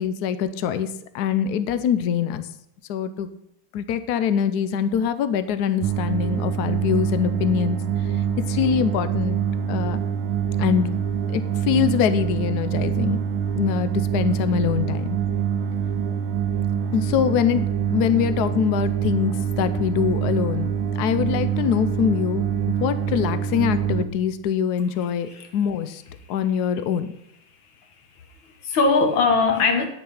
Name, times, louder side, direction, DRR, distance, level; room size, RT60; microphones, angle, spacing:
voice 1, 0.0-2.5 2.9-3.3 3.7-8.1 8.5-9.4 9.7-10.0 10.6-10.9 11.3-13.2 13.6-15.2 16.9-20.7 21.0-26.0 26.3-27.1, left 8 dB, 85° left, 12 dB, 0.8 m, -24 dB
sound 1, 5.8-24.1, right 8 dB, 75° right, 1.4 m, -25 dB
voice 2, 27.8-29.9, left 4 dB, 65° left, 5 dB, 2.0 m, -22 dB
9.4 x 6.6 x 5.6 m, 0.80 s
omnidirectional pair, 2.4 m